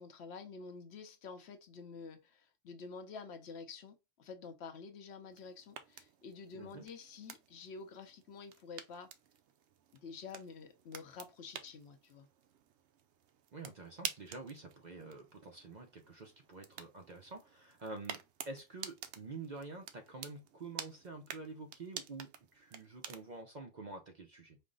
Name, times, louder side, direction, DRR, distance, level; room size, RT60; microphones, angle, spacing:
voice 1, 0.0-9.1 10.0-12.3, left 5 dB, 65° left, 0.8 m, -49 dB
sound 1, 5.3-23.4, right 8 dB, 70° right, 0.8 m, -50 dB
voice 2, 6.5-6.9 13.5-24.6, right 3 dB, 50° right, 0.6 m, -48 dB
5.2 x 2.0 x 3.7 m
omnidirectional pair, 1.3 m